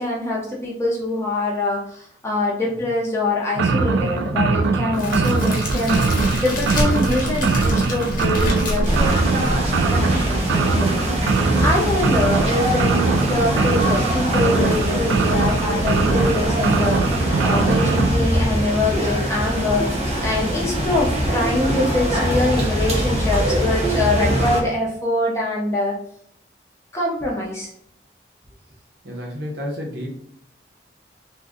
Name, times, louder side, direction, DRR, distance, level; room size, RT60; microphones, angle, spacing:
voice 1, 0.0-6.0 6.4-9.2 9.9-11.1 11.6-19.9 20.2-26.0 26.9-27.7, left 2 dB, 15° left, -3 dB, 0.6 m, -24 dB
sound 1, 3.5-18.1, right 4 dB, 85° right, 0.3 m, -21 dB
Crackle, 4.9-10.0, left 1 dB, 50° left, 0.9 m, -26 dB
sound 2, 8.8-24.6, right 1 dB, 35° right, 0.8 m, -23 dB
voice 2, 29.0-30.1, equal, 65° right, -2 dB, 0.9 m, -31 dB
2.6 x 2.2 x 3.5 m, 0.67 s
head